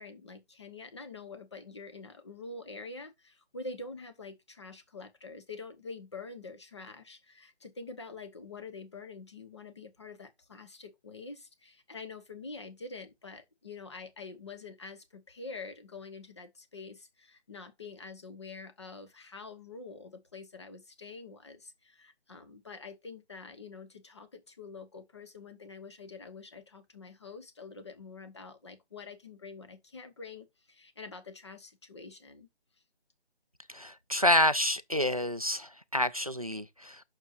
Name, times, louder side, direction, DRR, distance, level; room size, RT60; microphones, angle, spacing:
voice 1, 0.0-32.5, left 3 dB, 25° left, 1.0 m, -46 dB
voice 2, 33.7-37.0, left 1 dB, 35° right, 0.4 m, -28 dB
9.0 x 6.5 x 2.5 m
figure-of-eight pair, 165°, 32 cm